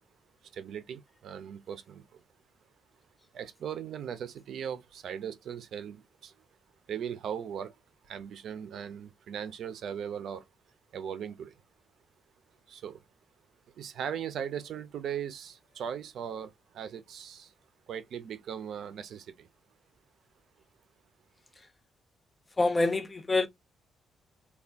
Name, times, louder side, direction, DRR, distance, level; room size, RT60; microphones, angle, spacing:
voice 1, 0.5-2.0 3.3-6.3 6.9-7.7 8.1-10.4 10.9-11.5 12.7-13.0 13.8-17.5 17.9-19.5, right 8 dB, 70° right, 0.6 m, -38 dB
voice 2, 22.6-23.5, left 2 dB, 20° left, 0.5 m, -26 dB
3.4 x 2.4 x 2.4 m
cardioid pair, 130°, 0 cm